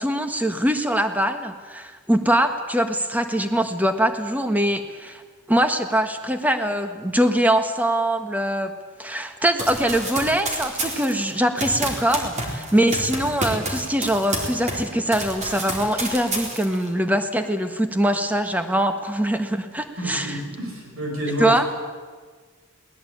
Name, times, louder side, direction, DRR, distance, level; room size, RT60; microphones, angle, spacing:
voice 1, 0.0-5.2 5.5-8.7 9.0-20.4 21.4-21.6, right 1 dB, 10° right, 7 dB, 1.5 m, -22 dB
Run, 9.6-14.9 15.1-16.9, right 2 dB, 35° right, 4.0 m, -29 dB
voice 2, 20.0-21.5, equal, 85° right, 0 dB, 7.2 m, -29 dB
22.0 x 19.0 x 8.8 m, 1.5 s
head